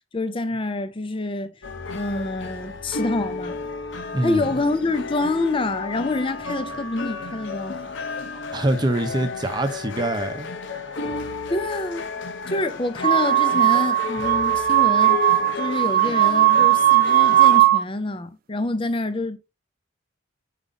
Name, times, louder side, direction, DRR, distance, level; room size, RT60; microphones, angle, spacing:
voice 1, 0.1-1.5 1.9-3.6 4.2-7.8 11.2-12.1 12.5-19.4, left 2 dB, 25° left, 0.6 m, -27 dB
sound 1, 1.6-17.6, left 4 dB, 65° left, 0.8 m, -32 dB
voice 2, 4.1-4.5 8.5-10.5, right 1 dB, 20° right, 0.8 m, -24 dB
sound 2, 13.0-17.8, right 13 dB, 45° right, 0.3 m, -18 dB
5.1 x 4.8 x 4.0 m
head